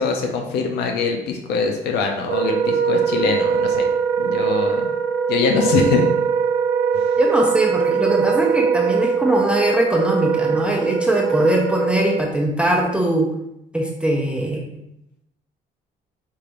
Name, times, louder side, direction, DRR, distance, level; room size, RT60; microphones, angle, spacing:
voice 1, 0.0-3.9 4.2-4.9 5.3-6.1, left 4 dB, 80° left, 3 dB, 0.6 m, -22 dB
Wind instrument woodwind instrument, 2.2-12.3, right 6 dB, 85° right, 0.5 m, -21 dB
voice 2, 7.2-13.3 13.7-14.6, right 1 dB, 5° right, -1 dB, 0.6 m, -21 dB
4.4 x 3.3 x 2.5 m, 0.82 s
cardioid pair, 110°, 17 cm